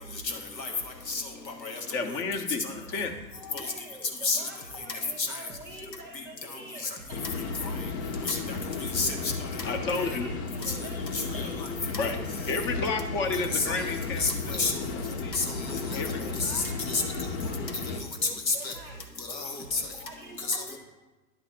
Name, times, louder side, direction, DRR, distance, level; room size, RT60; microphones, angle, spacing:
voice 1, 0.2-0.7 1.1-1.2 1.6-1.8 2.6-2.7 3.5-3.6 4.2-4.4 5.2-5.3 7.6-7.7 8.3-8.6 8.9-9.3 11.1-11.4 13.5-13.7 14.2-14.3 14.6-14.7 15.3-16.0 16.5-16.6 16.9-17.0 18.5-18.7 19.3-19.8 20.5-20.6, left 4 dB, 85° left, 3 dB, 1.4 m, -29 dB
voice 2, 1.9-3.1 5.8-5.9 9.6-10.3 11.8-12.2 12.5-15.4 16.0-16.4, left 3 dB, 25° left, 6 dB, 0.7 m, -32 dB
voice 3, 3.5-6.9 7.5-7.6 9.8-11.8 16.2-19.1 19.7-20.8, right 2 dB, 5° right, -9 dB, 0.4 m, -46 dB
sound 1, 7.1-18.0, left 4 dB, 50° left, 1.0 m, -34 dB
10.5 x 4.0 x 5.6 m, 1.2 s
figure-of-eight pair, 110°, 50 cm